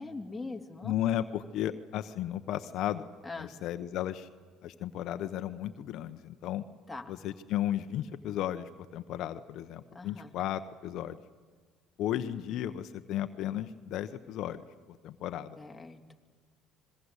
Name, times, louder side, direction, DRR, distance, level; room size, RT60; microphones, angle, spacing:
voice 1, 0.0-0.9 3.2-3.5 6.9-7.1 9.9-10.3 15.6-16.1, left 3 dB, 10° left, 2 dB, 2.4 m, -42 dB
voice 2, 0.8-3.0 3.4-4.3 4.6-6.6 7.1-11.2 12.0-15.6, left 12 dB, 65° left, 9 dB, 1.0 m, -34 dB
26.0 x 21.5 x 8.2 m, 1.5 s
supercardioid pair, 95°, 0 cm